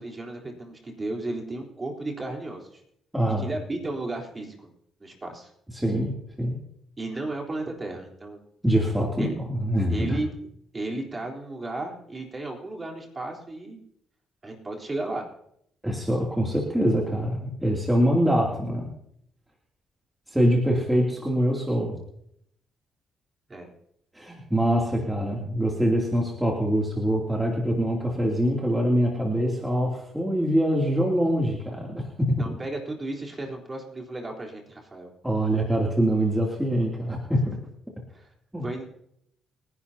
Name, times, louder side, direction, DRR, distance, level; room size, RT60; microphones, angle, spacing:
voice 1, 0.0-2.8 3.4-4.7 5.0-5.5 7.0-8.4 9.2-9.4 9.9-10.3 10.7-13.8 14.4-15.3 23.5-23.7 32.4-35.1 38.1-38.3 38.6-38.8, right 2 dB, 25° right, 0 dB, 3.9 m, -34 dB
voice 2, 3.1-3.5 5.7-6.1 6.4-6.6 8.6-10.1 15.8-18.9 20.3-22.0 24.1-32.0 32.4-32.5 35.2-37.6 38.5-38.6, equal, 5° right, -2 dB, 2.8 m, -24 dB
30.0 x 11.0 x 2.9 m, 0.72 s
cardioid pair, 90°, 0 cm